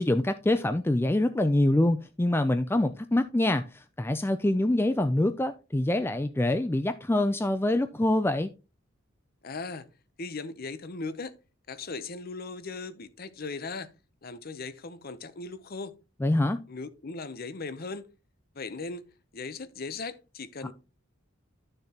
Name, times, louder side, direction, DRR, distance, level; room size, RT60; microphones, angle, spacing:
voice 1, 0.0-8.5 16.2-16.6, left 1 dB, 10° left, 0.3 m, -25 dB
voice 2, 9.4-9.9 10.2-11.3 11.7-13.9 14.2-15.9 16.7-18.1 18.6-20.7, left 3 dB, 45° left, 0.7 m, -38 dB
11.5 x 6.6 x 2.9 m
head